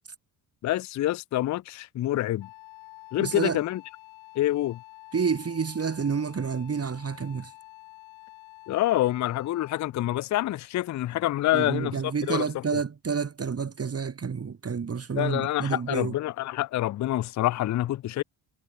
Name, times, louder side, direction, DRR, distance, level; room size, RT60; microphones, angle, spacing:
voice 1, 0.6-2.5 3.1-3.8 4.4-4.8 8.7-12.8 15.2-18.2, left 14 dB, 40° left, 0.4 m, -27 dB
Wind instrument woodwind instrument, 2.4-10.0, left 20 dB, 90° left, 2.6 m, -49 dB
voice 2, 3.2-3.6 5.1-7.5 11.5-16.1, right 6 dB, 30° right, 1.8 m, -29 dB
cardioid pair, 80°, 46 cm